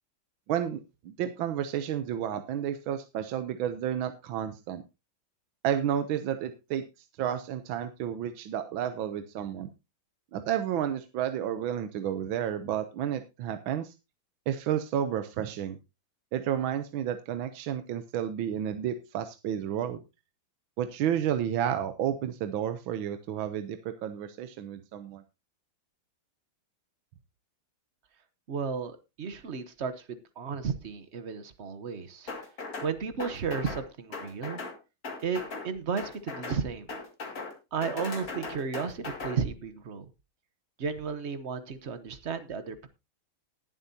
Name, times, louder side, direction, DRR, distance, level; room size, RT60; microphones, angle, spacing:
voice 1, 0.5-4.8 5.6-6.8 7.2-9.7 10.3-13.9 14.5-15.8 16.3-20.0 20.8-25.2, right 10 dB, 75° right, 9 dB, 1.5 m, -31 dB
voice 2, 28.5-32.3 32.8-34.6 35.2-36.9 37.7-40.0 40.8-42.9, right 6 dB, 45° right, 11 dB, 0.9 m, -33 dB
sound 1, 32.3-32.9 33.2-33.8 34.1-34.8 35.0-35.7 36.0-36.6 36.9-37.5 37.8-39.4, left 3 dB, 45° left, 2.5 m, -38 dB
19.5 x 7.5 x 2.7 m, 0.26 s
omnidirectional pair, 2.2 m